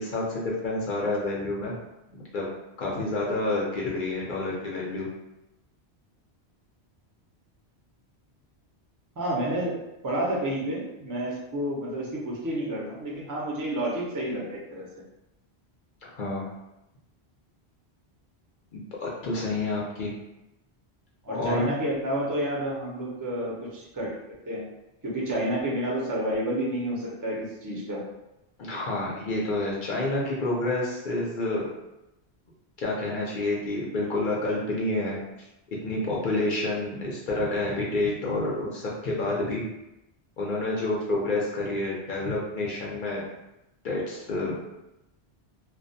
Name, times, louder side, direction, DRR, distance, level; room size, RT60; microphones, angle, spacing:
voice 1, 0.0-1.8 2.1-2.5 2.8-5.1 16.0-16.5 18.7-20.1 21.3-21.7 28.6-31.7 32.8-35.2 35.7-39.6 40.4-43.2 43.8-44.6, left 2 dB, 60° left, -4 dB, 0.6 m, -29 dB
voice 2, 9.2-14.9 21.2-24.7 25.0-28.1, right 1 dB, 25° right, -5 dB, 0.4 m, -30 dB
2.3 x 2.1 x 2.6 m, 0.91 s
omnidirectional pair, 1.1 m